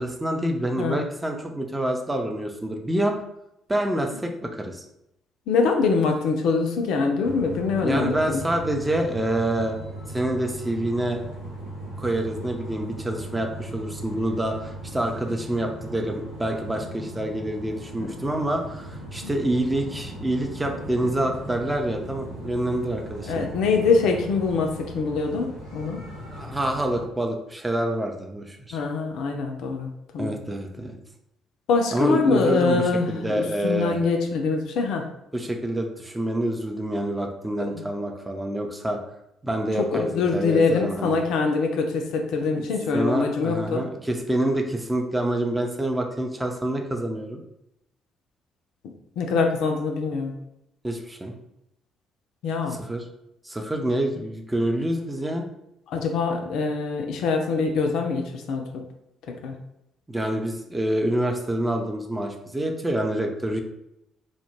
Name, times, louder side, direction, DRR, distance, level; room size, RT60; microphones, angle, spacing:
voice 1, 0.0-3.2 3.7-4.8 7.8-9.8 10.1-11.2 12.0-23.5 26.3-28.8 30.2-31.0 31.9-34.0 35.3-39.0 39.4-41.2 42.5-42.7 42.9-47.4 50.8-51.3 52.8-53.0 53.4-55.5 60.1-63.6, right 1 dB, 15° right, 3 dB, 0.4 m, -27 dB
voice 2, 5.5-8.4 19.2-19.3 23.3-26.0 28.7-29.9 30.1-30.3 31.7-35.0 37.7-37.8 39.8-43.9 49.2-50.3 52.4-52.8 55.9-58.8 59.4-59.5, left 4 dB, 60° left, 3 dB, 0.3 m, -24 dB
sound 1, 7.2-27.0, right 1 dB, 85° right, 0.7 m, -38 dB
2.2 x 2.0 x 3.1 m, 0.84 s
figure-of-eight pair, 45°, 0 cm